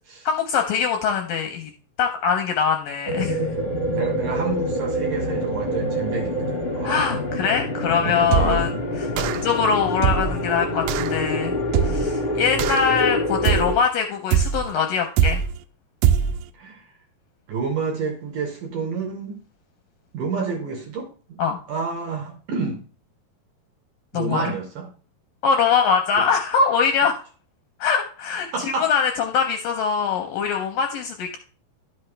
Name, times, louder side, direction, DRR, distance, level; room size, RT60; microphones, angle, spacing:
voice 1, 0.3-1.7 2.0-3.5 6.8-8.7 9.0-9.1 9.4-11.6 11.8-15.4 21.4-21.6 24.1-24.4 25.4-27.2 27.8-31.4, left 6 dB, 80° left, 4 dB, 2.1 m, -22 dB
sound 1, 3.0-13.7, left 1 dB, 55° left, 0.7 m, -26 dB
voice 2, 3.9-7.1 8.1-8.6 9.1-9.3 16.6-16.8 17.5-19.4 20.1-21.4 21.7-22.8 24.1-24.9 28.5-28.9, right 5 dB, 65° right, 2 dB, 2.2 m, -29 dB
sound 2, 8.3-8.7 9.2-9.6 10.0-10.4 10.9-11.2 11.7-12.2 12.6-13.0 13.5-13.9 14.3-14.7 15.2-15.6 16.0-16.5, right 9 dB, 85° right, 2.3 m, -22 dB
11.5 x 5.8 x 3.3 m, 0.38 s
omnidirectional pair, 4.7 m